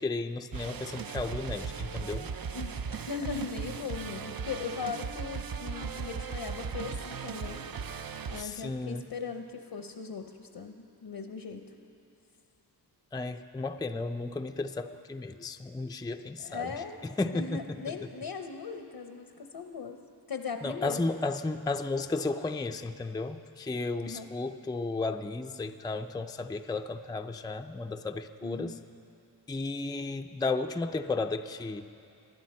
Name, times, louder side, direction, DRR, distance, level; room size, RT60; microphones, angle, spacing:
voice 1, 0.0-2.3 8.4-9.1 13.1-16.7 17.2-17.6 20.6-28.8 29.5-31.9, left 3 dB, 10° left, 7 dB, 0.4 m, -33 dB
sound 1, 0.5-8.4, right 6 dB, 60° right, 0.5 m, -37 dB
voice 2, 2.5-7.6 8.3-11.7 16.4-17.1 17.3-20.0 20.3-21.1 24.0-24.3 28.4-28.8, left 5 dB, 75° left, 5 dB, 0.8 m, -39 dB
19.0 x 11.5 x 4.3 m, 2.6 s
wide cardioid pair, 55°, 41 cm